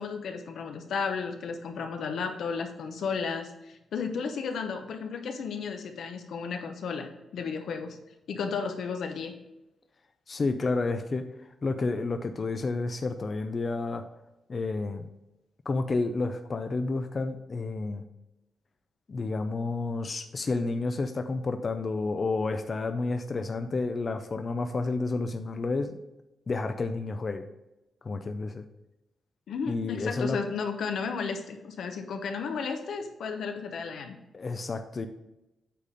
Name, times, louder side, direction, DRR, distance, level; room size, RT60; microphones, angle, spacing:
voice 1, 0.0-8.0 8.3-9.3 29.5-34.2, left 5 dB, 70° left, 5 dB, 1.0 m, -33 dB
voice 2, 10.3-11.2 11.6-14.0 14.5-15.1 15.7-18.0 19.1-25.9 26.5-27.4 28.0-28.6 29.7-30.4 34.3-35.1, left 3 dB, 30° left, 7 dB, 0.4 m, -30 dB
8.4 x 4.2 x 4.9 m, 0.94 s
wide cardioid pair, 175°, 0 cm